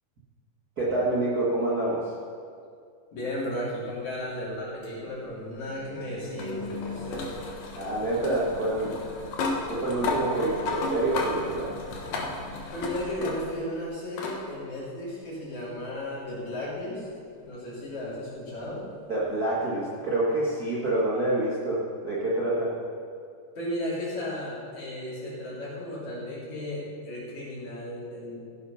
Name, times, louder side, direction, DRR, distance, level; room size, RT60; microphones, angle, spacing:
voice 1, 0.8-2.1 7.7-9.0 9.7-11.7 19.1-22.7, right 1 dB, 90° right, -7 dB, 0.8 m, -27 dB
voice 2, 3.1-7.3 12.7-17.1 17.4-18.8 23.6-28.5, left 1 dB, 50° left, -7 dB, 4.5 m, -34 dB
sound 1, 4.8-13.7 14.2-14.4 15.7-15.8 18.7-18.8, left 3 dB, 65° left, 2.8 m, -34 dB
15.5 x 7.0 x 5.7 m, 2.3 s
omnidirectional pair, 4.5 m